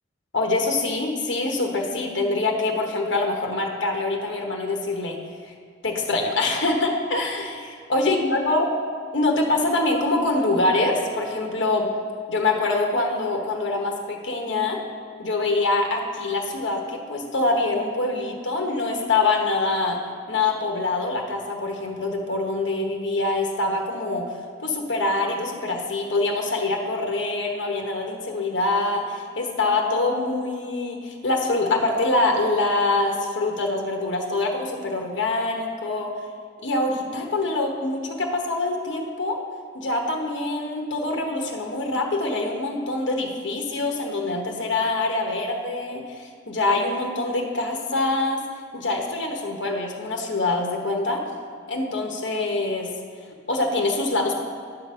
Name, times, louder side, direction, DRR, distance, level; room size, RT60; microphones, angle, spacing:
voice 1, 0.3-5.2 5.8-8.7 9.1-11.9 12.3-14.8 15.2-20.0 20.3-24.3 24.6-36.1 36.6-39.4 39.7-48.4 48.7-51.2 51.7-52.9 53.5-54.4, left 2 dB, 75° left, 1 dB, 1.1 m, -24 dB
9.9 x 4.0 x 6.6 m, 2.1 s
head